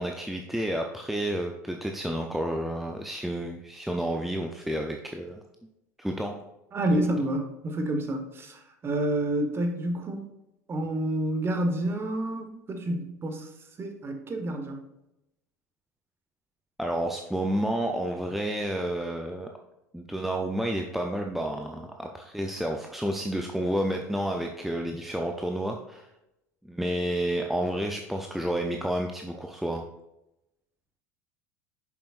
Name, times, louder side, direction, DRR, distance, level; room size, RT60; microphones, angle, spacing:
voice 1, 0.0-5.4 6.0-6.3 16.8-19.5 19.9-26.1 26.7-29.9, right 1 dB, ahead, 2 dB, 0.7 m, -30 dB
voice 2, 6.7-10.3 10.7-13.5 13.8-14.8, right 1 dB, 25° right, 5 dB, 1.5 m, -29 dB
10.0 x 7.0 x 2.6 m, 0.89 s
figure-of-eight pair, 75°, 9 cm